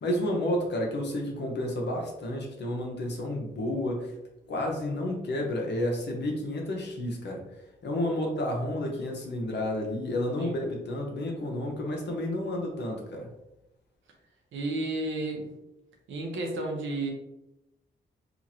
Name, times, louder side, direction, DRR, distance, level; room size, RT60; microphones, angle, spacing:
voice 1, 0.0-4.1 4.5-7.4 7.8-13.3, left 1 dB, 60° left, 0 dB, 0.8 m, -31 dB
voice 2, 14.5-15.5 16.1-17.1, right 2 dB, 80° right, 0 dB, 0.7 m, -32 dB
2.9 x 2.5 x 2.7 m, 0.92 s
supercardioid pair, 55°, 20 cm